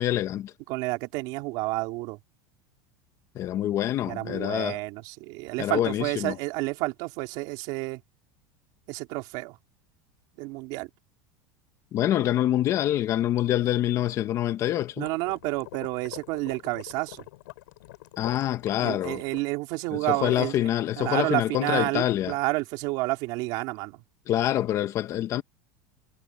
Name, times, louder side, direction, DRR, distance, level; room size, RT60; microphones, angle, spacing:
voice 1, 0.0-0.5 3.3-4.8 5.6-6.4 11.9-15.1 18.2-19.2 19.9-22.3 24.3-25.4, left 12 dB, 30° left, 0.9 m, -26 dB
voice 2, 0.7-2.2 4.1-8.0 8.9-9.6 10.4-10.9 15.0-17.2 18.8-20.5 21.0-24.0, right 22 dB, 50° right, 3.1 m, -30 dB
sound 1, 15.0-19.4, left 19 dB, 75° left, 5.1 m, -45 dB
supercardioid pair, 165°, 10 cm